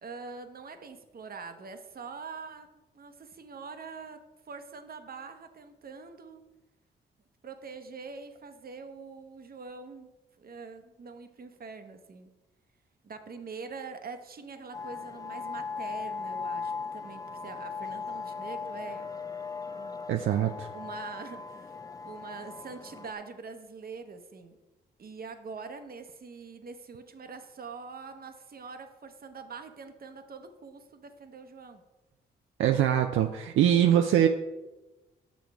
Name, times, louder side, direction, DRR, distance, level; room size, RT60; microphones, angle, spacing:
voice 1, 0.0-4.2 4.5-6.4 7.4-10.1 10.4-12.3 13.0-19.2 19.7-20.1 20.7-21.8 22.0-24.6 25.0-31.8, right 4 dB, 50° right, 7 dB, 0.8 m, -44 dB
sound 1, 14.7-23.1, left 5 dB, 20° left, 0.4 m, -38 dB
voice 2, 20.1-20.7 32.6-34.3, right 10 dB, 80° right, 5 dB, 0.4 m, -23 dB
6.2 x 6.2 x 3.4 m, 1.1 s
supercardioid pair, 55°, 20 cm